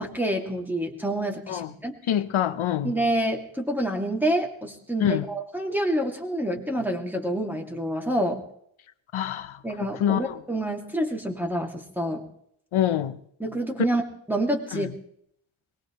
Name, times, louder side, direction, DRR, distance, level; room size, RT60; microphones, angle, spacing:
voice 1, 0.0-1.9 2.8-8.4 9.6-12.3 13.4-14.0 14.3-14.9, right 1 dB, 5° right, 2.3 m, -27 dB
voice 2, 2.1-2.9 5.0-5.3 9.1-10.4 12.7-13.2 14.7-14.9, left 10 dB, 85° left, 0.9 m, -26 dB
22.5 x 19.5 x 3.1 m
wide cardioid pair, 120°, 48 cm